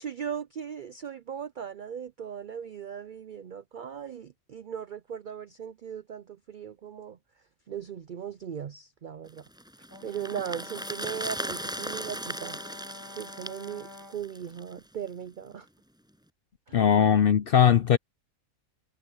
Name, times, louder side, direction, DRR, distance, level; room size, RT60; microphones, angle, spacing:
voice 1, 0.0-7.2 7.7-9.4 10.0-12.6 13.2-15.7 16.7-16.8, right 8 dB, 75° right, 0.4 m, -38 dB
sound 1, 9.4-14.8 15.1-15.2, equal, 5° right, 6.4 m, -38 dB
Brass instrument, 9.9-14.3, left 1 dB, 15° left, 1.9 m, -47 dB
voice 2, 16.7-18.0, left 8 dB, 55° left, 0.6 m, -20 dB
omnidirectional pair, 1.5 m